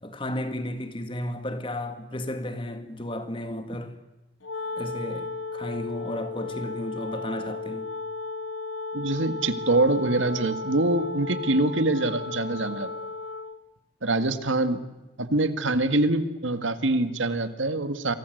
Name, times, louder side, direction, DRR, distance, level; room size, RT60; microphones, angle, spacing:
voice 1, 0.0-4.0 4.8-7.9, left 1 dB, 25° left, 2.0 m, -33 dB
Wind instrument woodwind instrument, 4.4-13.6, left 3 dB, 85° left, 1.3 m, -34 dB
voice 2, 8.9-12.9 14.0-14.8 15.2-18.1, right 2 dB, 80° right, 2.0 m, -24 dB
29.0 x 24.0 x 8.0 m
head